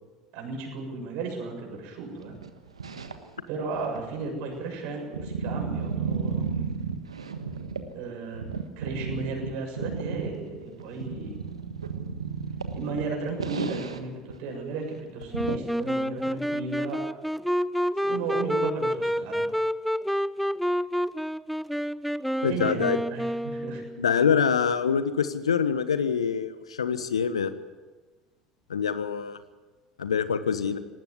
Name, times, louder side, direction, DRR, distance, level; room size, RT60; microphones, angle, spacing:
voice 1, 0.3-2.4 3.5-6.5 7.9-11.4 12.7-17.0 18.0-19.4 22.4-22.8 23.1-23.8, right 4 dB, 60° right, 1 dB, 7.2 m, -34 dB
sound 1, 2.2-3.4 3.7-8.0 8.3-14.0 14.3-14.4 14.7-14.8 15.2-15.6, right 5 dB, 80° right, 1.3 m, -33 dB
Wind instrument woodwind instrument, 15.3-24.1, equal, ahead, 0.6 m, -28 dB
voice 2, 22.4-23.0 24.0-27.5 28.7-29.4 30.0-30.8, left 7 dB, 80° left, 13 dB, 1.2 m, -25 dB
19.5 x 15.5 x 9.7 m, 1.2 s
figure-of-eight pair, 65°, 3 cm